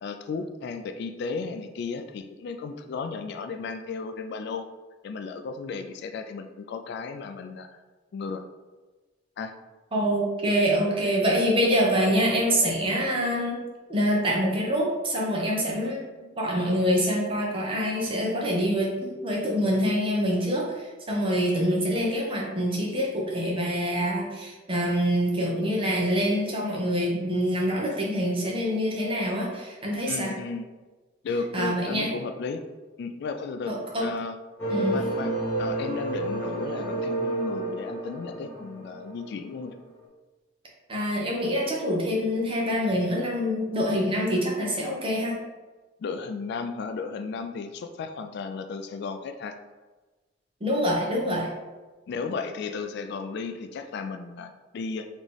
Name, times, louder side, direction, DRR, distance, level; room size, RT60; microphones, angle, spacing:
voice 1, 0.0-4.7 5.0-7.8 8.1-8.4 9.4-9.5 30.1-30.7 31.2-32.6 33.0-33.7 34.0-34.4 34.9-35.3 35.6-39.7 46.0-49.6 52.1-55.1, left 4 dB, 60° left, 7 dB, 0.3 m, -34 dB
voice 2, 9.9-13.6 13.9-16.0 16.4-30.3 31.5-32.1 33.7-34.1 34.7-35.0 40.9-45.4 50.6-51.5, equal, 30° right, -3 dB, 0.9 m, -25 dB
sound 1, 34.6-39.7, right 2 dB, 10° left, 1.3 m, -30 dB
4.2 x 3.0 x 3.3 m, 1.2 s
head